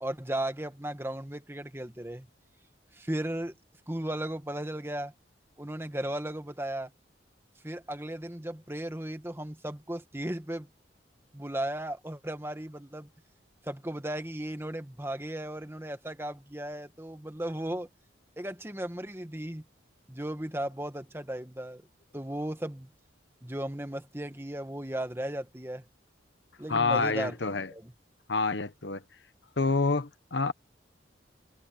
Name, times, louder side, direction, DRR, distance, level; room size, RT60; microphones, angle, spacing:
voice 1, 0.0-2.3 2.9-3.6 3.9-5.1 5.6-6.9 7.6-10.7 11.3-13.1 13.6-17.9 18.4-19.6 20.1-21.8 22.1-22.9 23.4-25.8 26.6-27.4 27.7-27.9, right 1 dB, 15° right, 1.5 m, -35 dB
voice 2, 26.7-27.7 28.3-29.0 29.6-30.5, left 4 dB, 70° left, 1.1 m, -27 dB
head